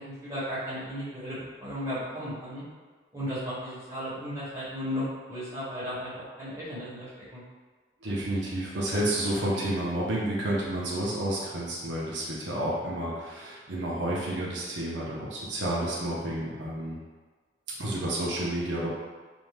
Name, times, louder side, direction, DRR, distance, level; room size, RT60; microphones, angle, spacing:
voice 1, 0.0-2.6 3.1-7.4, equal, 15° right, -12 dB, 1.1 m, -35 dB
voice 2, 8.0-17.0 17.8-18.9, right 1 dB, 85° right, -5 dB, 0.6 m, -30 dB
2.6 x 2.2 x 3.2 m, 1.4 s
head